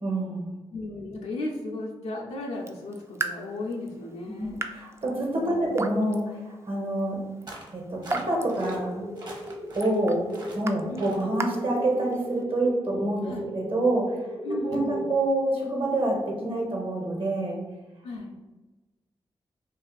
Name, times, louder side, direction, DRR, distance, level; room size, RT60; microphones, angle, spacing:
voice 1, 0.0-0.5 4.3-7.2 7.5-9.1 9.7-10.2 10.5-14.3 14.6-17.6, right 1 dB, 60° right, -1 dB, 1.2 m, -27 dB
voice 2, 0.7-4.6 5.3-5.7 10.9-11.1 13.2-13.5 14.4-15.0 18.0-18.3, left 2 dB, 85° left, -2 dB, 0.5 m, -35 dB
Raindrop / Drip, 2.5-12.4, right 3 dB, 25° right, 0.4 m, -39 dB
sound 1, 7.5-7.7 8.0-8.8 9.2-10.0 10.3-10.6 11.0-11.3, right 2 dB, 40° right, 1.0 m, -42 dB
sound 2, 8.5-15.3, right 1 dB, 75° right, 0.5 m, -36 dB
2.6 x 2.5 x 3.8 m, 1.2 s
cardioid pair, 45°, 11 cm